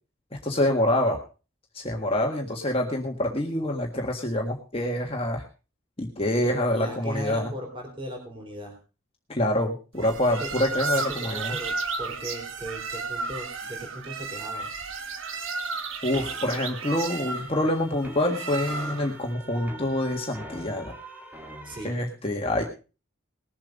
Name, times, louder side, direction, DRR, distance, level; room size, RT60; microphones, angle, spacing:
voice 1, 0.4-1.2 1.7-5.4 6.0-7.5 9.3-11.6 16.0-21.0 21.8-22.6, left 1 dB, 25° left, 1 dB, 1.6 m, -26 dB
voice 2, 6.4-8.8 10.2-10.5 10.9-14.7 21.6-22.0, equal, 25° right, 1 dB, 3.9 m, -38 dB
sound 1, 10.0-19.2, right 4 dB, 70° right, 1.5 m, -33 dB
sound 2, 16.1-21.9, equal, 10° right, 1.9 m, -43 dB
20.0 x 7.5 x 5.2 m, 0.35 s
head